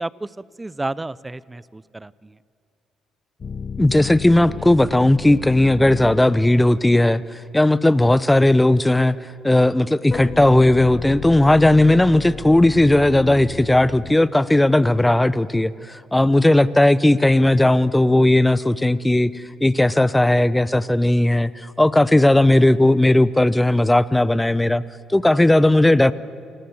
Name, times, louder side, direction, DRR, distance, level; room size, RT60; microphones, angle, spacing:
voice 1, 0.0-2.4, right 2 dB, 20° right, 21 dB, 0.7 m, -31 dB
sound 1, 3.4-6.5 10.1-14.7, left 6 dB, 45° left, 1.1 m, -33 dB
voice 2, 3.8-7.2 7.5-9.2 9.4-21.5 21.8-24.8 25.1-26.1, left 1 dB, 10° left, 18 dB, 0.9 m, -16 dB
28.5 x 19.0 x 8.0 m, 2.5 s
hypercardioid pair, 50°, 0 cm